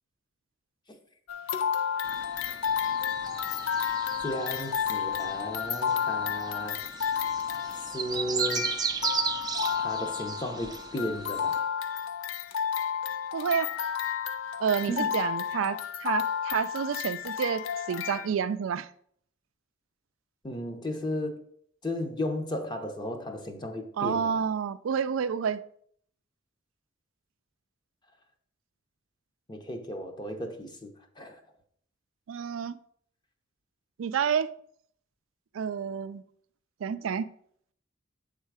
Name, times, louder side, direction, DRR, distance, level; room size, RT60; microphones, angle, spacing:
sound 1, 1.3-18.3, left 8 dB, 90° left, 0.5 m, -31 dB
sound 2, 2.0-11.6, right 6 dB, 20° right, 0.4 m, -36 dB
voice 1, 4.2-6.8 7.8-8.8 9.7-11.6 14.9-15.2 20.4-21.4 21.8-24.4 29.5-31.4, left 1 dB, 20° left, 0.7 m, -34 dB
voice 2, 13.3-13.7 14.6-18.9 24.0-25.6 32.3-32.8 34.0-34.5 35.5-36.2 36.8-37.3, right 7 dB, 85° right, 0.4 m, -29 dB
7.3 x 3.7 x 4.7 m
head